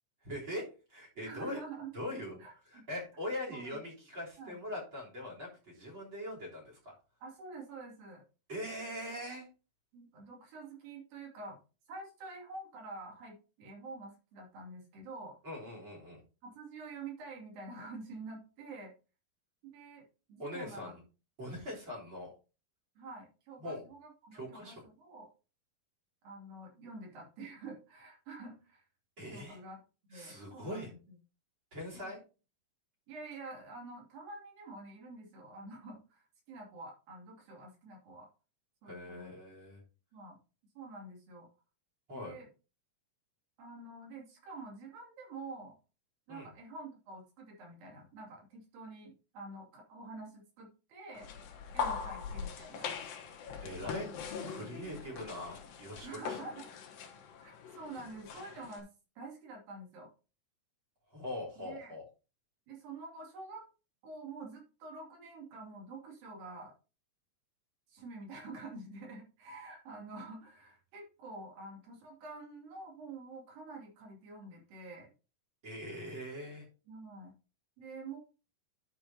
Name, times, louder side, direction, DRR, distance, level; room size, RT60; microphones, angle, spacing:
voice 1, 0.2-1.6 1.9-2.4 2.7-7.0 8.5-9.5 15.4-16.2 20.4-21.0 21.4-22.3 23.6-23.8 24.3-24.8 29.2-29.6 30.1-30.9 31.7-32.2 38.9-39.8 42.1-42.4 46.3-46.5 53.6-54.1 54.5-56.4 61.1-62.0 75.6-76.7, left 1 dB, 35° right, -1 dB, 4.1 m, -42 dB
voice 2, 1.2-1.9 2.4-2.8 3.5-3.8 4.4-4.6 7.2-8.2 9.9-11.6 11.9-15.4 16.4-18.9 19.6-20.0 20.3-20.9 23.0-25.3 26.2-28.9 29.3-29.8 30.1-31.2 31.9-32.1 33.1-38.3 38.8-39.3 40.1-40.4 40.8-41.5 42.1-42.5 43.6-45.8 46.3-51.3 51.7-52.9 53.8-54.1 56.0-56.6 57.4-58.9 59.2-60.1 61.6-61.9 62.7-63.7 64.0-66.7 67.9-75.1 76.9-77.3 77.8-78.2, right 3 dB, 80° right, -1 dB, 4.4 m, -47 dB
sound 1, 51.2-58.8, left 6 dB, 85° left, 3.1 m, -41 dB
11.5 x 6.4 x 2.8 m, 0.33 s
omnidirectional pair, 4.0 m